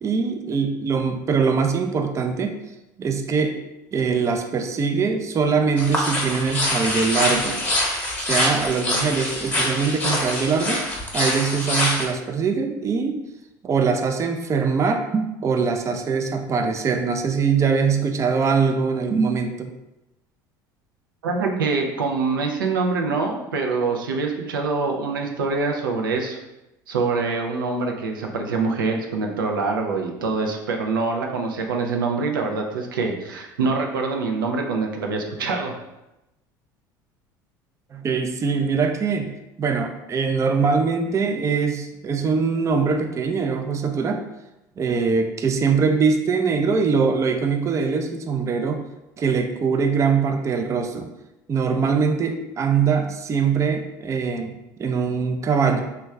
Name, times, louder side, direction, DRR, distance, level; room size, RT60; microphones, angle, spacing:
voice 1, 0.0-2.6 3.0-3.6 3.9-7.6 8.2-10.8 11.1-13.2 13.6-19.7 37.9-39.3 39.6-44.2 44.8-48.8 49.2-51.1 51.5-55.8, right 5 dB, 30° right, 6 dB, 0.4 m, -22 dB
sound 1, 5.8-12.0, left 1 dB, 15° left, 1.0 m, -24 dB
voice 2, 21.2-26.4 26.9-35.7, right 4 dB, 90° right, 2 dB, 0.4 m, -25 dB
3.0 x 2.2 x 3.4 m, 0.95 s
hypercardioid pair, 75°, 11 cm